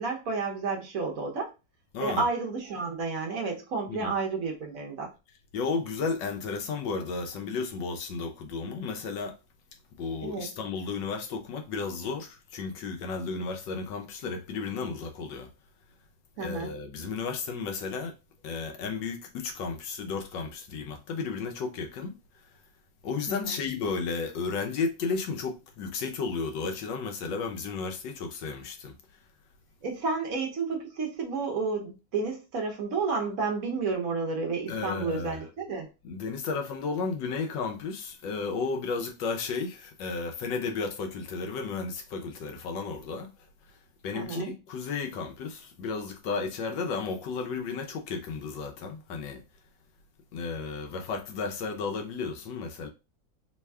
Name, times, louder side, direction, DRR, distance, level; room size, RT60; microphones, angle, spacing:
voice 1, 0.0-1.5 2.0-5.1 10.2-10.5 16.4-16.7 23.3-23.6 29.8-35.9 44.1-44.5, right 4 dB, 55° right, 1.1 m, -31 dB
voice 2, 1.9-2.2 3.9-4.1 5.5-9.4 10.0-15.5 16.4-18.1 18.4-22.2 23.0-29.0 34.7-35.4 36.0-43.3 44.0-49.4 50.3-52.9, left 4 dB, 75° left, 1.3 m, -33 dB
3.5 x 2.2 x 3.3 m
omnidirectional pair, 2.1 m